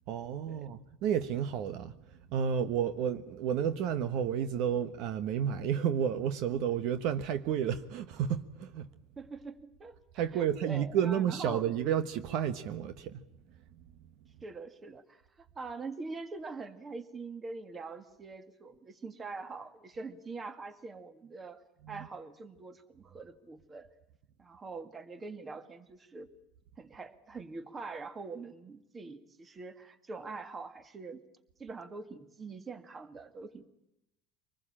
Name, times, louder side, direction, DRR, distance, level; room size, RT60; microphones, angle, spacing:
voice 1, 0.1-8.9 10.1-13.2 21.9-22.1, right 8 dB, 60° right, 1.2 m, -31 dB
voice 2, 9.2-10.0 10.3-11.7 14.4-23.9 24.4-26.3 26.8-31.2 31.6-33.7, right 4 dB, 20° right, 1.9 m, -44 dB
25.0 x 20.0 x 8.7 m
supercardioid pair, 140°, 0 cm